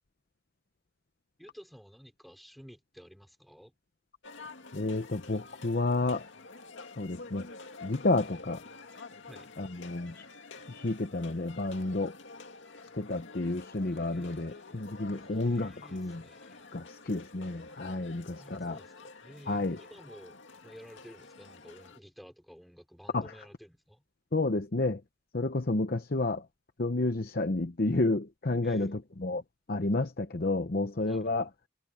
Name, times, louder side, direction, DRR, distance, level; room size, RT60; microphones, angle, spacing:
voice 1, 1.4-3.7 9.3-9.5 14.1-16.6 18.4-20.4 20.6-24.0 28.6-28.9 31.1-31.3, equal, ahead, 4.4 m, -52 dB
sound 1, 4.2-22.0, left 3 dB, 75° left, 2.2 m, -49 dB
voice 2, 4.7-6.3 7.0-7.5 7.8-8.6 9.6-10.2 10.7-12.1 13.0-16.2 16.7-18.8 19.5-19.8 23.1-23.3 24.3-25.0 25.3-26.4 26.8-29.4 29.7-31.5, left 2 dB, 50° left, 0.8 m, -30 dB
head